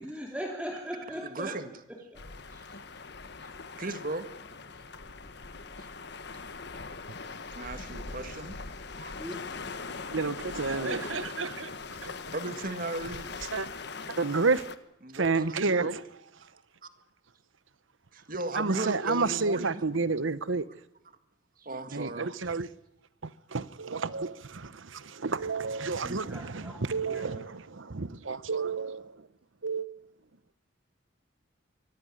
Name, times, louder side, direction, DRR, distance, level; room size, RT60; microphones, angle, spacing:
voice 1, 0.0-1.5 1.9-2.2 9.2-9.4 10.7-11.3 19.0-19.4 26.0-27.4, equal, 5° right, 2.9 m, -40 dB
voice 2, 1.2-1.7 2.5-2.7 3.8-4.3 4.8-5.2 5.8-5.9 7.5-8.6 9.0-9.1 10.9-11.0 12.3-13.3 15.0-15.9 16.8-16.9 18.1-19.8 21.6-22.3, right 2 dB, 45° right, 1.8 m, -36 dB
sound 1, 2.1-14.8, left 4 dB, 55° left, 1.3 m, -41 dB
voice 3, 10.1-11.7 12.0-12.1 13.5-13.7 14.2-14.6 15.1-16.0 18.6-20.7 21.9-22.7 23.2-29.1 29.6-29.9, right 4 dB, 70° right, 1.0 m, -30 dB
24.0 x 16.0 x 9.9 m
head